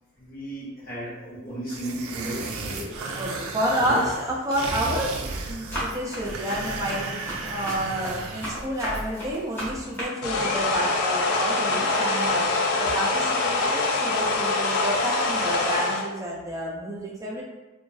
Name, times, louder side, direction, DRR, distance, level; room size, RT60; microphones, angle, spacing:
voice 1, 0.1-3.4 3.8-4.0, right 1 dB, 45° left, -7 dB, 0.9 m, -35 dB
sound 1, 1.7-8.7, right 3 dB, 80° right, 0.3 m, -34 dB
voice 2, 3.2-7.2 7.5-12.5 12.8-17.4, right 1 dB, 15° right, -5 dB, 0.4 m, -29 dB
Run, 4.0-4.3 4.8-10.1, equal, 10° left, 0.7 m, -35 dB
Coffee machine - Grind, 10.2-16.1, left 3 dB, 80° left, 0.4 m, -24 dB
2.5 x 2.2 x 2.3 m, 1.1 s
head